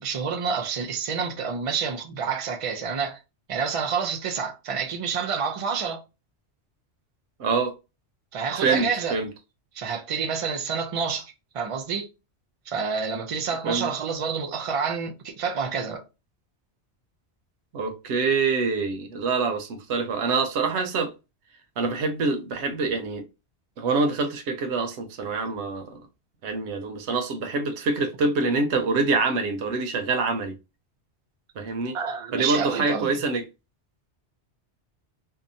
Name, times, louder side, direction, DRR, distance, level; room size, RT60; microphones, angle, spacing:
voice 1, 0.0-3.2 3.5-6.0 8.3-9.2 9.7-12.1 12.7-16.0 31.9-33.2, right 6 dB, 60° right, 0.3 m, -28 dB
voice 2, 7.4-7.7 8.5-9.3 13.6-13.9 17.7-21.1 21.8-23.2 23.8-26.0 26.4-30.6 31.6-32.0 32.3-33.4, right 4 dB, 80° right, 0.9 m, -25 dB
2.7 x 2.1 x 2.6 m
omnidirectional pair, 1.1 m